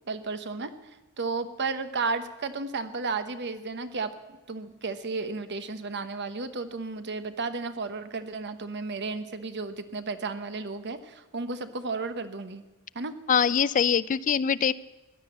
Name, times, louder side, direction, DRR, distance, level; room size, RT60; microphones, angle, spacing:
voice 1, 0.1-0.7 1.2-4.1 4.5-12.6 12.9-13.1, right 4 dB, 55° right, 10 dB, 1.0 m, -33 dB
voice 2, 13.3-14.7, left 7 dB, 35° left, 17 dB, 0.4 m, -23 dB
15.5 x 10.5 x 8.0 m, 1.1 s
head